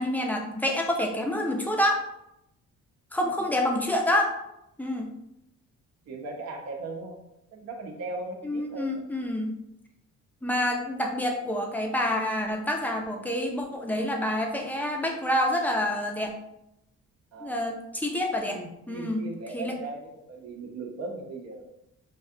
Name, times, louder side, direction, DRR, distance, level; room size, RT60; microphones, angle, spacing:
voice 1, 0.0-2.0 3.1-4.3 4.8-5.1 8.4-9.5 10.4-16.3 17.4-18.6 18.9-19.2 19.5-19.7, left 1 dB, 5° left, 1 dB, 0.5 m, -27 dB
voice 2, 6.1-7.2 7.5-9.0 17.3-17.6 18.5-21.7, right 2 dB, 60° right, 1 dB, 0.8 m, -38 dB
3.3 x 2.3 x 2.7 m, 0.84 s
cardioid pair, 90°, 30 cm